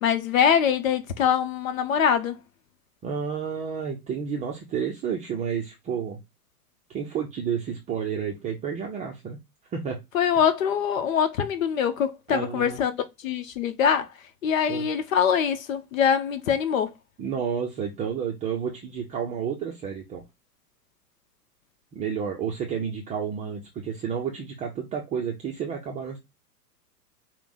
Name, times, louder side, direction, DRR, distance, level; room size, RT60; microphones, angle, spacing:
voice 1, 0.0-2.3 10.1-12.9 13.2-14.1 14.4-16.9, left 8 dB, 55° left, 1.0 m, -23 dB
voice 2, 3.0-6.2 6.9-9.4 9.7-10.0 10.3-10.4 12.3-12.8 14.7-14.9 17.2-20.2 21.9-26.2, right 7 dB, 15° right, 0.6 m, -31 dB
5.7 x 2.3 x 4.0 m
figure-of-eight pair, 100°, 48 cm